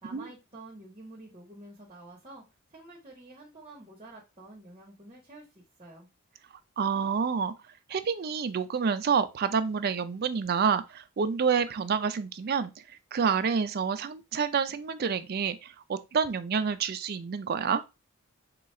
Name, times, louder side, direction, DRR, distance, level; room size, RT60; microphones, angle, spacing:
voice 1, 0.0-2.4 2.7-6.1, right 2 dB, 25° right, 1.0 m, -49 dB
voice 2, 6.8-7.5 7.9-17.8, right 6 dB, 45° right, 0.4 m, -28 dB
3.8 x 2.3 x 4.2 m
head